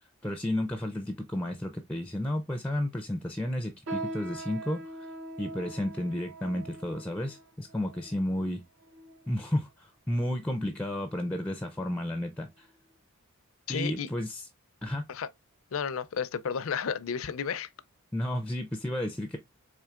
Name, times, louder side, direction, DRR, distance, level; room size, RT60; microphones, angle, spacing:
voice 1, 0.2-5.1 5.4-8.6 9.3-12.7 13.7-14.5 14.8-15.0 18.1-19.4, left 1 dB, 5° left, 0.4 m, -32 dB
sound 1, 3.9-9.5 10.2-10.3 11.1-11.4 11.8-11.9 12.6-12.7, right 2 dB, 65° right, 0.7 m, -42 dB
voice 2, 13.7-14.1 15.1-15.3 15.7-17.7, left 7 dB, 70° left, 0.5 m, -32 dB
4.4 x 3.2 x 2.4 m
head